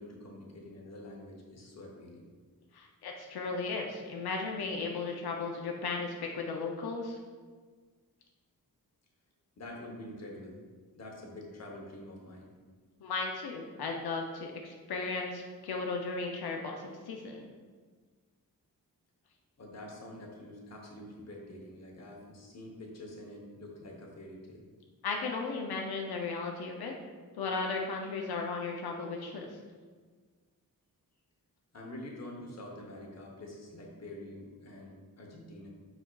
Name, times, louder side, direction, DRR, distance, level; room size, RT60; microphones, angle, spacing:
voice 1, 0.0-2.3 9.6-10.6 10.9-12.5 19.6-24.6 31.7-35.7, left 1 dB, 45° left, 0 dB, 0.8 m, -46 dB
voice 2, 2.7-7.2 13.0-17.5 25.0-26.9 27.4-29.5, left 4 dB, 85° left, 1 dB, 0.5 m, -35 dB
4.5 x 4.4 x 2.2 m, 1.5 s
wide cardioid pair, 140°, 37 cm